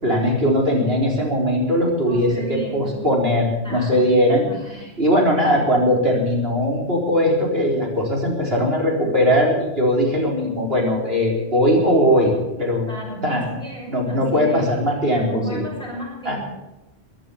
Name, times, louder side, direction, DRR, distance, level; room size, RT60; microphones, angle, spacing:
voice 1, 0.0-12.3 12.6-12.9 13.2-13.6 13.9-15.6 16.2-16.4, equal, 65° right, -1 dB, 4.4 m, -20 dB
voice 2, 2.0-3.1 3.6-4.0 4.4-4.9 12.9-14.7 15.2-16.6, right 1 dB, 5° left, -4 dB, 7.6 m, -33 dB
16.0 x 10.0 x 8.6 m, 0.99 s
omnidirectional pair, 1.1 m